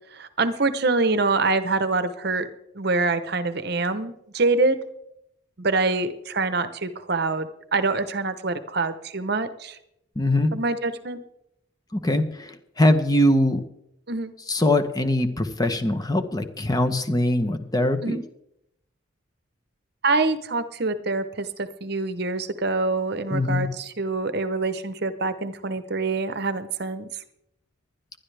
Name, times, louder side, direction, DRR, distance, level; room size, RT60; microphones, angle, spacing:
voice 1, 0.1-2.5 2.7-4.8 5.6-9.8 10.5-11.2 14.1-14.3 18.0-18.2 20.0-27.1, right 3 dB, 55° right, 11 dB, 0.9 m, -25 dB
voice 2, 10.2-10.5 11.9-13.6 14.5-18.2 23.3-23.7, left 1 dB, 20° left, 8 dB, 0.8 m, -22 dB
20.0 x 11.5 x 3.4 m, 0.80 s
head